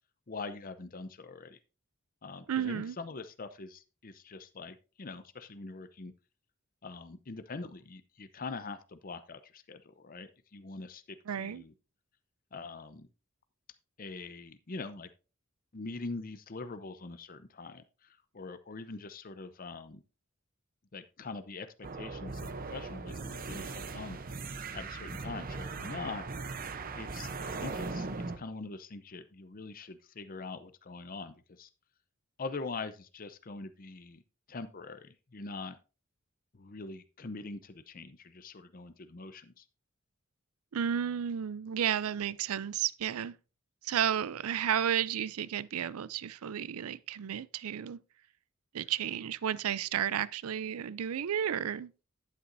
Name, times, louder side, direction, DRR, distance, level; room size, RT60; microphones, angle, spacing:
voice 1, 0.3-1.6 2.2-6.1 6.8-11.7 12.5-13.1 14.0-15.1 15.7-17.8 18.3-20.0 20.9-24.2 24.7-26.3 27.0-28.1 28.4-31.7 32.4-34.2 34.5-35.8 36.5-39.6, left 3 dB, 40° left, 0.7 m, -43 dB
voice 2, 2.5-3.0 11.3-11.6 40.7-43.4 43.8-48.0 48.7-51.9, right 9 dB, 90° right, 0.4 m, -32 dB
sound 1, 21.8-28.4, right 3 dB, 40° right, 0.7 m, -39 dB
11.0 x 9.3 x 2.6 m
head